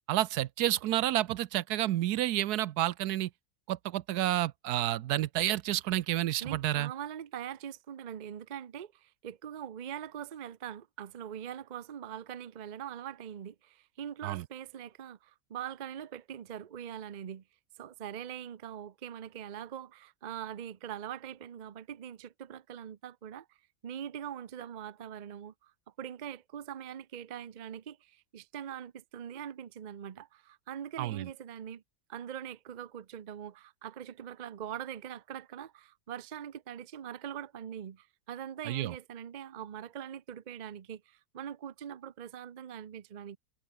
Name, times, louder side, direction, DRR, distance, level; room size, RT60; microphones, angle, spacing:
voice 1, 0.1-3.3 3.7-6.9 14.2-14.4 31.0-31.3 38.6-38.9, right 14 dB, 85° right, 1.2 m, -30 dB
voice 2, 6.4-17.4 17.8-23.6 23.8-25.7 26.0-31.8 32.1-43.4, right 9 dB, 45° right, 0.6 m, -42 dB
omnidirectional pair, 1.7 m